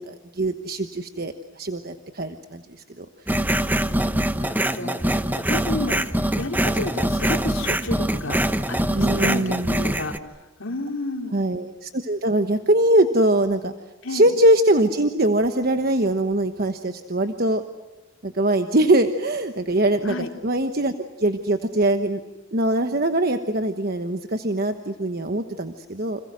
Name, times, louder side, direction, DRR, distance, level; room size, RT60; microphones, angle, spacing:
voice 1, 0.0-3.1 9.0-9.7 11.3-13.7 14.1-17.6 18.2-22.2 22.5-26.2, right 1 dB, 50° right, 8 dB, 1.2 m, -22 dB
sound 1, 3.3-10.2, right 1 dB, 10° right, 0.9 m, -23 dB
voice 2, 4.4-10.1 10.6-11.3 14.0-14.3 20.0-20.3, left 2 dB, 80° left, 4 dB, 3.0 m, -31 dB
29.5 x 27.0 x 6.3 m, 1.1 s
head